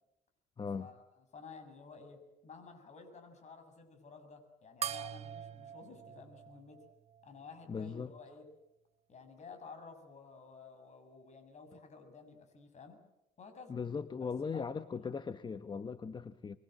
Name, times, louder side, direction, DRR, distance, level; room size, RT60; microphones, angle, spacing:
voice 1, 0.6-0.9 7.7-8.1 13.7-16.6, left 5 dB, 25° left, 12 dB, 0.9 m, -39 dB
voice 2, 1.3-6.8 7.2-8.4 9.1-13.0 13.4-13.8 14.4-14.6 15.0-15.2, left 4 dB, 45° left, 7 dB, 6.9 m, -53 dB
sound 1, 4.8-7.6, right 9 dB, 40° right, 0.9 m, -43 dB
26.0 x 22.0 x 7.8 m, 0.90 s
cardioid pair, 110°, 17 cm